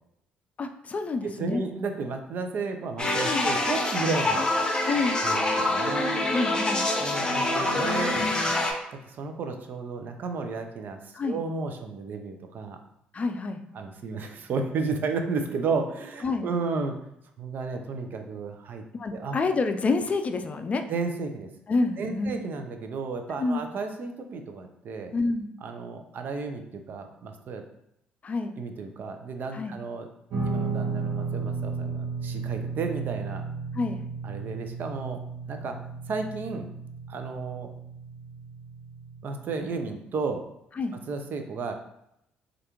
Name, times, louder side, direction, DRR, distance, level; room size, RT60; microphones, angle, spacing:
voice 1, 0.6-1.6 3.2-3.5 4.9-5.2 6.3-6.8 7.8-8.4 11.1-11.4 13.1-13.6 16.2-16.5 19.0-20.8 21.7-22.3 23.4-23.6 25.1-25.5 28.2-28.5 29.5-29.7 33.7-34.0 40.8-40.9, left 3 dB, 35° left, 7 dB, 0.4 m, -28 dB
voice 2, 1.2-4.5 5.0-6.3 7.0-8.2 8.9-12.8 13.7-17.0 17.4-18.8 19.1-19.4 20.9-21.5 22.0-25.1 25.6-27.6 28.6-30.1 30.4-33.5 34.2-35.2 35.5-35.8 36.1-36.7 37.1-37.7 39.2-40.4 41.1-41.7, right 4 dB, 60° right, 6 dB, 0.6 m, -33 dB
sound 1, 3.0-8.7, left 2 dB, 20° left, 0.8 m, -26 dB
Guitar, 30.3-39.6, right 4 dB, 75° right, 1.0 m, -34 dB
4.7 x 2.5 x 2.9 m, 0.78 s
supercardioid pair, 70°, 4 cm